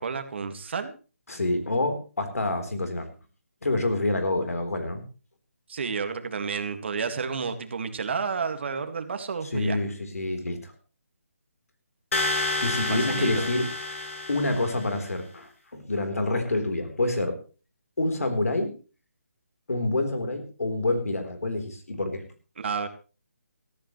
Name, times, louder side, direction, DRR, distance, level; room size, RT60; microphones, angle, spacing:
voice 1, 0.0-0.9 5.7-9.8 13.1-13.5 22.6-22.9, right 5 dB, 50° right, 8 dB, 2.0 m, -31 dB
voice 2, 1.3-3.1 3.6-5.0 9.5-10.7 12.6-13.7 14.3-17.4 18.0-18.7 19.7-22.2, left 2 dB, 80° left, 6 dB, 3.9 m, -27 dB
sound 1, 12.1-15.0, left 2 dB, 60° left, 3.5 m, -29 dB
19.5 x 14.0 x 3.2 m, 0.34 s
figure-of-eight pair, 160°, 8 cm